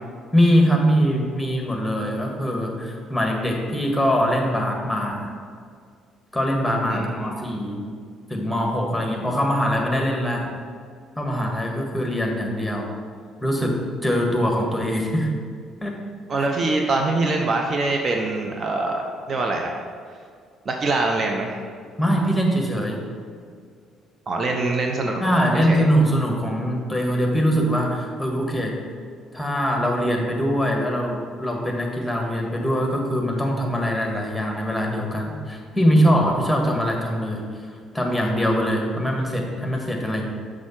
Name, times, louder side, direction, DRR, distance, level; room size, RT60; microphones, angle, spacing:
voice 1, 0.3-5.3 6.3-7.9 8.3-10.5 11.2-12.9 13.4-15.3 15.8-16.0 16.4-16.5 22.0-23.0 25.2-28.8 29.3-37.5 37.9-40.3, equal, 5° left, 0 dB, 1.7 m, -22 dB
voice 2, 6.9-7.3 16.3-19.8 20.7-21.6 24.3-25.2 25.5-25.8, right 2 dB, 45° right, 2 dB, 0.7 m, -24 dB
6.2 x 4.8 x 5.9 m, 2.1 s
hypercardioid pair, 50°, 0 cm